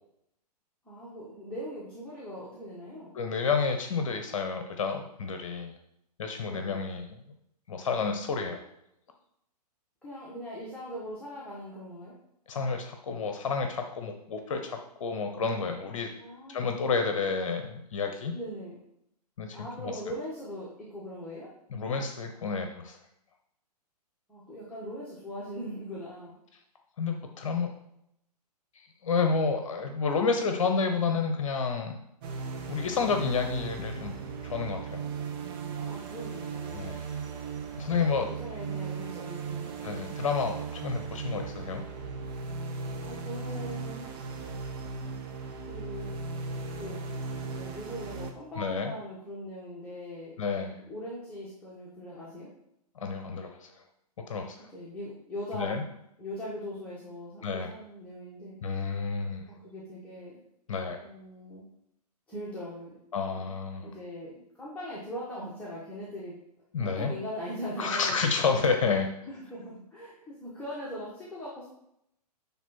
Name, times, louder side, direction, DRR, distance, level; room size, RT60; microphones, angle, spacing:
voice 1, 0.8-3.2 6.4-6.9 10.0-12.1 16.2-16.6 18.3-18.8 19.5-21.5 24.3-26.3 29.8-30.0 35.8-36.8 37.8-40.2 43.0-44.1 45.7-46.1 46.8-47.1 47.4-50.4 50.7-52.5 54.7-55.8 56.2-58.6 59.5-60.4 61.0-61.7 62.3-63.0 63.2-63.5 63.8-66.3 66.8-68.2 69.3-71.7, equal, 5° left, -8 dB, 1.7 m, -40 dB
voice 2, 3.1-5.7 6.2-7.2 7.7-8.6 12.5-16.1 16.5-18.3 19.4-19.9 21.7-23.0 27.0-27.7 29.0-32.0 32.7-34.1 34.4-35.0 36.7-37.0 37.8-38.3 39.8-41.8 48.6-48.9 50.4-50.7 53.0-53.7 54.3-54.7 55.5-55.8 57.4-57.7 58.6-59.4 60.7-61.0 63.1-63.9 66.7-67.1 67.8-69.1, left 5 dB, 50° left, 5 dB, 0.9 m, -30 dB
sound 1, 32.2-48.3, right 5 dB, 35° right, 1.1 m, -37 dB
10.5 x 3.5 x 4.5 m, 0.78 s
figure-of-eight pair, 115°, 21 cm